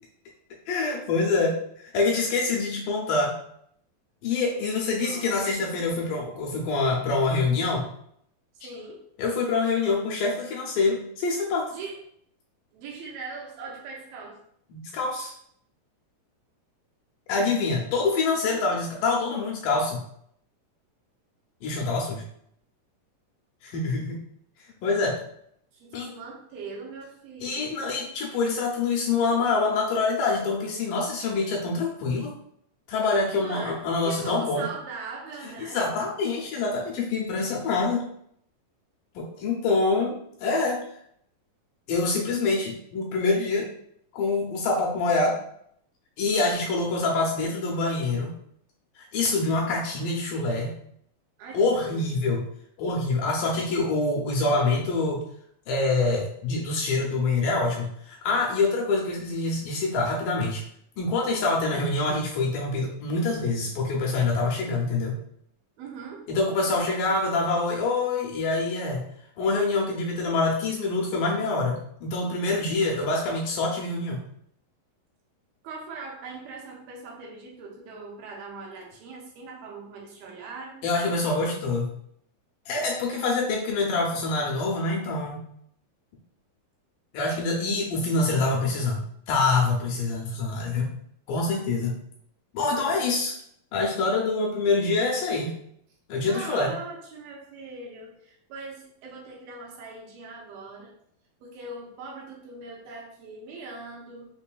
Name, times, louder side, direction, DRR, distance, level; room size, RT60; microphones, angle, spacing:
voice 1, 0.7-1.6 1.9-3.3 4.2-7.9 9.2-11.7 14.7-15.3 17.3-20.0 21.6-22.2 23.6-24.2 24.8-25.2 25.9-26.1 27.4-32.3 32.9-34.6 35.4-38.1 39.2-40.8 41.9-43.7 44.1-45.4 46.2-48.3 49.0-50.7 51.5-52.4 52.8-55.2 55.7-60.6 61.0-65.1 66.3-69.0 69.4-74.2 80.8-81.9 82.7-85.4 87.1-89.0 89.3-91.0 91.3-92.0 92.5-93.3 93.7-95.5 96.1-96.7, left 3 dB, 75° left, -2 dB, 2.1 m, -25 dB
voice 2, 4.5-5.7 8.5-9.0 11.7-12.0 12.7-14.4 25.7-27.7 33.4-35.8 51.4-52.2 63.6-63.7 65.8-66.3 75.6-80.8 96.3-100.9 101.4-104.3, right 4 dB, 80° right, -2 dB, 2.6 m, -41 dB
5.9 x 2.6 x 2.3 m, 0.69 s
omnidirectional pair, 4.2 m